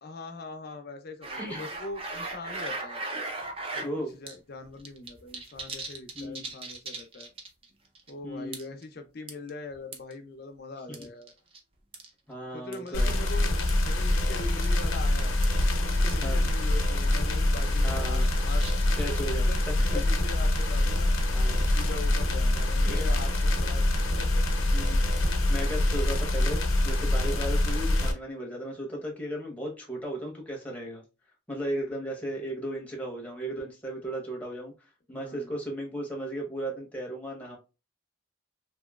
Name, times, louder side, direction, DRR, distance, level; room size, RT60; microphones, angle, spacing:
voice 1, 0.0-3.0 3.7-3.9 4.1-7.3 8.1-11.3 12.5-13.5 13.8-15.4 15.8-18.6 19.4-21.1 21.7-23.9 24.2-24.5 35.1-35.5, left 3 dB, 50° left, 0.4 m, -42 dB
sound 1, 1.2-3.9 4.3-4.4 4.6-7.6 7.9-8.1 8.5-8.8 9.3-10.1 10.9-11.6 11.9-12.1 12.7-12.9 13.7-13.8 14.2-14.3 14.6-14.8 15.0-15.1 15.4-15.5 16.1-16.2 16.4-16.5 16.9-17.1 17.6-19.2, right 3 dB, 30° right, 0.4 m, -38 dB
voice 2, 1.4-1.7 3.8-4.2 6.1-6.5 8.2-8.8 10.9-11.0 12.3-13.2 16.2-16.5 17.8-18.3 18.9-20.0 21.3-21.7 22.8-23.1 24.7-31.0 31.5-34.7 35.1-37.6, right 1 dB, 5° left, 0.8 m, -36 dB
sound 2, 12.9-28.1, left 1 dB, 90° left, 0.7 m, -25 dB
2.9 x 2.7 x 2.3 m
head